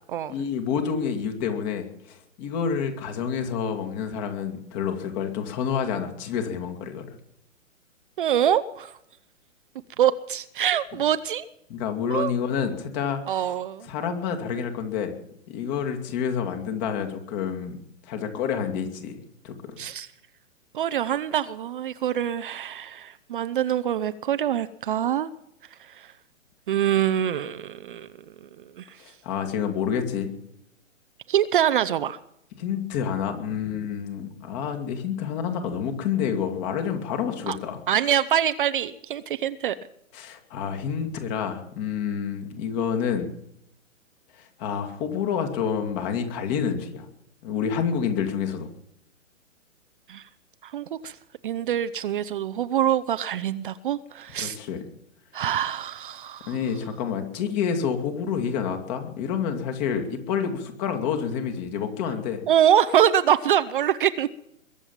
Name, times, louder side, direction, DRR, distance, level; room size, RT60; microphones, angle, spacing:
voice 1, 0.3-7.2 11.7-13.5 13.9-15.2 15.5-17.8 18.1-19.2 19.4-19.8 29.0-30.3 32.6-37.8 40.1-43.3 44.4-47.1 47.4-48.7 54.4-54.8 56.5-62.4, left 7 dB, 30° left, 5 dB, 2.4 m, -28 dB
voice 2, 8.2-8.9 10.0-11.4 12.1-12.3 13.3-13.9 19.8-20.1 20.7-25.3 25.8-26.1 26.7-28.1 28.8-29.0 31.3-32.2 37.5-37.6 37.9-39.7 50.1-50.2 50.6-51.2 51.4-54.6 55.3-56.6 62.5-64.3, right 10 dB, 40° right, 12 dB, 0.6 m, -24 dB
22.0 x 7.7 x 7.2 m, 0.76 s
hypercardioid pair, 135°, 40 cm